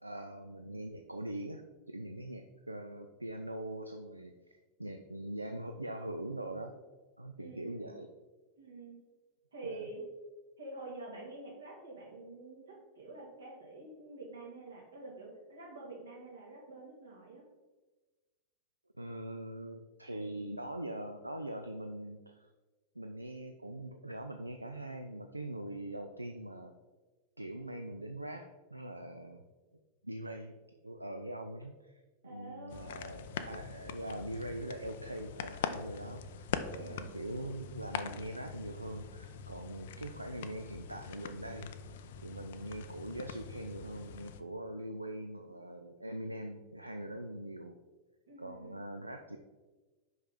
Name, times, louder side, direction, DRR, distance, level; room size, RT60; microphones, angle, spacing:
voice 1, 0.0-6.8 7.2-8.1 9.6-9.9 19.0-22.5 23.0-26.7 27.4-29.4 30.0-30.6 30.8-41.7 42.2-47.8 48.4-49.4, right 1 dB, 85° right, 6 dB, 0.3 m, -42 dB
voice 2, 7.4-8.0 8.6-9.0 9.5-10.0 10.6-17.5 32.2-33.3 36.8-37.2 48.3-48.8, right 2 dB, 70° right, -3 dB, 1.9 m, -48 dB
sound 1, 32.7-44.4, left 7 dB, 55° left, 0.4 m, -43 dB
5.4 x 5.4 x 3.7 m, 1.2 s
figure-of-eight pair, 90°, 0 cm